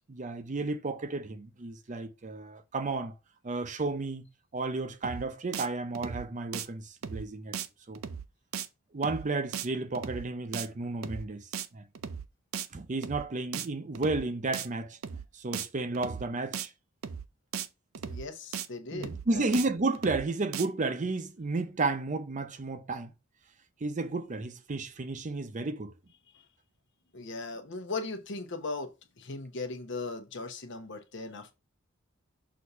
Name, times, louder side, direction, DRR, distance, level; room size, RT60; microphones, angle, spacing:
voice 1, 0.1-3.1 3.4-4.3 4.5-7.6 7.9-8.0 8.9-11.8 12.7-15.0 15.3-16.7 18.9-23.1 23.8-25.9, right 3 dB, 35° right, 0.5 m, -32 dB
sound 1, 5.0-5.3 5.5-5.7 5.9-6.3 6.5-6.7 7.0-7.3 7.5-7.7 7.9-8.3 8.5-8.7 9.0-9.3 9.5-9.7 9.9-10.3 10.5-10.7 11.0-11.3 11.5-11.7 11.9-12.3 12.5-12.7 13.0-13.3 13.5-13.7 13.9-14.3 14.5-14.7 15.0-15.3 15.5-15.7 15.9-16.3 16.5-16.7 17.0-17.3 17.5-17.7 17.9-18.3 18.5-18.7 19.0-19.3 19.5-19.7 19.9-20.3 20.5-20.7, right 7 dB, 85° right, 0.5 m, -37 dB
voice 2, 18.1-19.5 26.3-26.4 27.1-31.5, left 3 dB, 60° left, 1.0 m, -38 dB
6.4 x 2.7 x 5.5 m
head